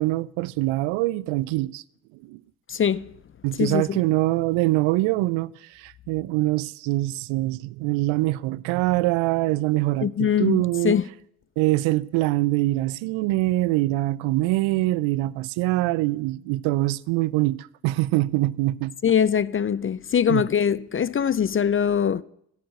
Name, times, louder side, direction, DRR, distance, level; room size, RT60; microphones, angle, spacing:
voice 1, 0.0-1.8 2.2-2.4 3.4-11.0 11.6-19.0 20.3-20.4, right 18 dB, 80° right, 0.5 m, -24 dB
voice 2, 2.7-3.1 3.6-4.0 10.0-11.0 19.0-22.2, left 8 dB, 30° left, 0.4 m, -22 dB
13.0 x 6.4 x 7.9 m
hypercardioid pair, 45°, 47 cm